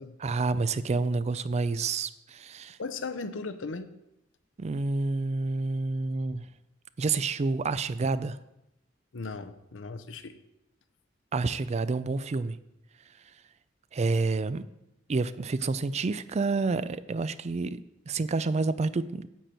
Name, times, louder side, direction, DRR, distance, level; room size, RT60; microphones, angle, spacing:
voice 1, 0.2-2.8 4.6-6.5 7.0-8.4 11.3-12.6 13.9-14.6 15.1-19.3, right 3 dB, 35° right, 15 dB, 0.4 m, -29 dB
voice 2, 2.8-3.9 9.1-10.4, left 3 dB, 75° left, 10 dB, 0.7 m, -37 dB
10.0 x 4.4 x 7.7 m, 0.89 s
head